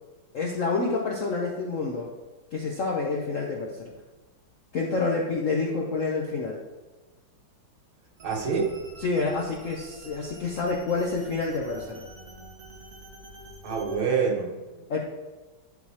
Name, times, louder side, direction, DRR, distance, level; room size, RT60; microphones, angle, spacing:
voice 1, 0.3-2.1 2.5-3.9 4.7-6.6 9.0-12.0 14.9-15.0, left 3 dB, 65° left, -1 dB, 0.8 m, -28 dB
sound 1, 8.2-14.0, right 1 dB, 40° right, 1.5 m, -47 dB
voice 2, 8.2-8.7 13.6-14.6, right 5 dB, 75° right, -1 dB, 2.0 m, -26 dB
11.5 x 4.1 x 2.9 m, 1.2 s
omnidirectional pair, 2.2 m